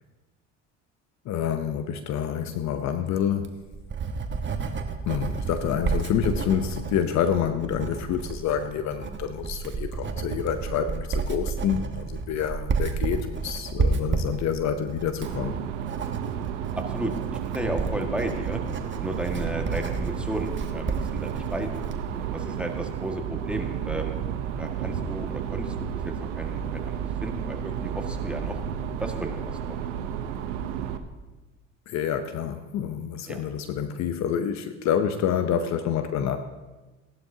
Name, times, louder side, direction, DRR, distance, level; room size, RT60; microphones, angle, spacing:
voice 1, 1.2-3.6 5.1-15.6 31.9-36.4, left 8 dB, 50° left, 9 dB, 0.8 m, -28 dB
Writing, 3.3-22.0, right 4 dB, 30° right, 1.3 m, -31 dB
sound 1, 15.2-31.0, right 8 dB, 80° right, 0.9 m, -32 dB
voice 2, 17.5-18.6 19.0-21.9 22.1-24.2 24.6-26.8 27.2-28.6 29.0-29.6 33.3-33.4, right 1 dB, 5° right, 2 dB, 1.7 m, -33 dB
17.0 x 11.5 x 2.8 m, 1.2 s
hypercardioid pair, 75°, 36 cm